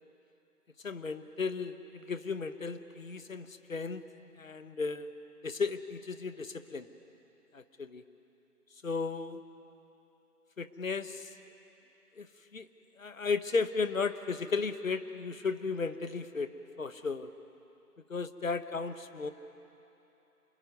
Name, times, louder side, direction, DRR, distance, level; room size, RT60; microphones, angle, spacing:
voice 1, 0.8-4.0 4.4-5.1 5.4-6.9 7.5-8.0 8.8-9.4 10.6-11.3 12.2-12.3 12.5-12.7 13.0-16.5 16.8-17.3 18.1-19.3, left 4 dB, 55° left, 11 dB, 1.3 m, -34 dB
27.5 x 18.0 x 9.6 m, 3.0 s
figure-of-eight pair, 165°, 47 cm